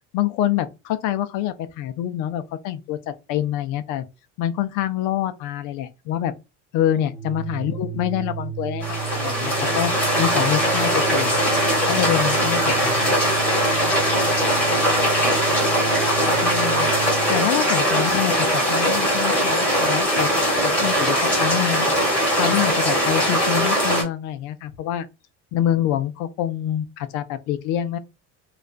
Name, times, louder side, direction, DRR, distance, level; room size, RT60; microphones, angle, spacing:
voice 1, 0.1-4.1 4.4-6.3 6.7-9.9 10.2-11.4 11.9-13.1 16.4-20.3 20.6-21.9 22.3-25.1 25.5-28.0, left 11 dB, 65° left, 0.4 m, -26 dB
Organ, 7.0-17.4, right 10 dB, 45° left, 0.8 m, -32 dB
sound 1, 8.8-24.0, equal, 5° left, 1.1 m, -20 dB
2.4 x 2.2 x 2.4 m
cardioid pair, 155°, 32 cm